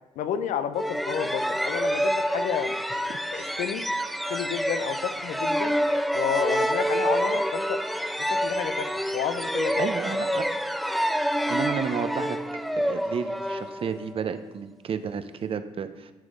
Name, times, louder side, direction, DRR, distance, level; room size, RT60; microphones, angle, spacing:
voice 1, 0.2-2.7 3.3-3.8 4.3-5.8 6.1-7.8 8.2-9.9, left 9 dB, 80° left, 11 dB, 0.6 m, -31 dB
sound 1, 0.8-14.3, equal, ahead, 0.4 m, -27 dB
voice 2, 9.8-10.5 11.5-12.4 12.7-16.1, right 6 dB, 45° right, 10 dB, 0.6 m, -32 dB
11.5 x 5.2 x 3.7 m, 1.0 s
cardioid pair, 85°, 13 cm